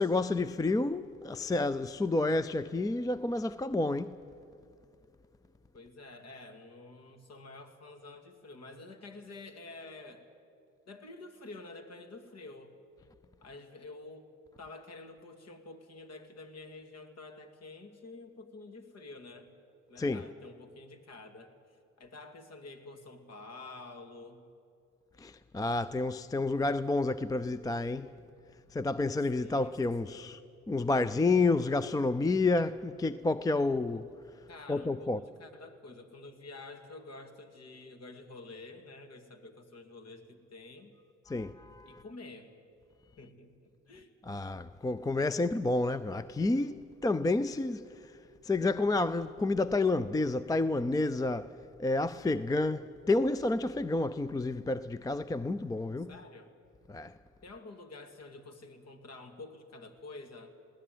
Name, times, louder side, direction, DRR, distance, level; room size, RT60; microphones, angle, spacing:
voice 1, 0.0-4.2 20.0-20.3 25.2-28.1 28.7-30.4 30.7-34.1 34.7-35.2 41.3-42.0 44.3-48.1 48.4-56.1 56.9-57.1, left 2 dB, 10° left, 0.4 m, -30 dB
voice 2, 5.7-10.3 10.9-12.7 13.4-14.3 14.6-19.5 19.9-24.5 29.3-29.7 30.1-30.4 33.9-34.0 34.5-40.9 41.9-42.5 43.2-44.1 56.0-56.6 57.4-60.5, left 3 dB, 55° left, 2.3 m, -49 dB
21.0 x 17.0 x 9.3 m
cardioid pair, 90°, 30 cm